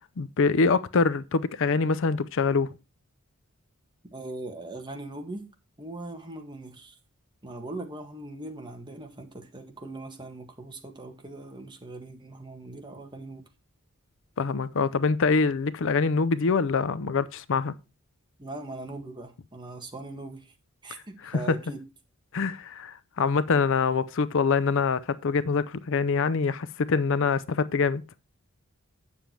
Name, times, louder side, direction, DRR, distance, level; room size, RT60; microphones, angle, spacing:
voice 1, 0.2-2.7 14.4-17.7 21.2-21.4 22.3-28.0, left 4 dB, 60° left, 0.5 m, -25 dB
voice 2, 4.1-5.5 5.8-7.0 7.4-13.5 18.4-20.5 20.8-21.8 23.6-23.8, right 2 dB, 20° right, 1.7 m, -40 dB
8.9 x 7.2 x 4.5 m
head